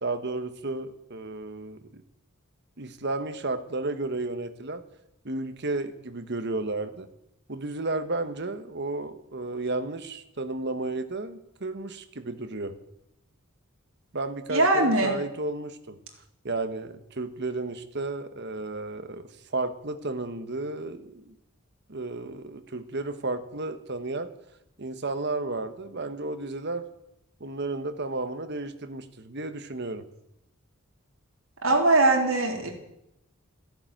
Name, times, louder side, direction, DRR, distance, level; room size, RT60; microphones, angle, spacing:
voice 1, 0.0-2.0 2.8-4.8 5.2-7.1 7.5-12.8 14.1-16.0 16.4-21.3 21.9-24.3 24.8-26.9 27.4-30.0, right 2 dB, 50° right, 9 dB, 1.3 m, -33 dB
voice 2, 14.5-15.2 31.6-32.7, right 2 dB, 70° right, 1 dB, 3.7 m, -21 dB
14.5 x 10.5 x 9.2 m, 0.82 s
head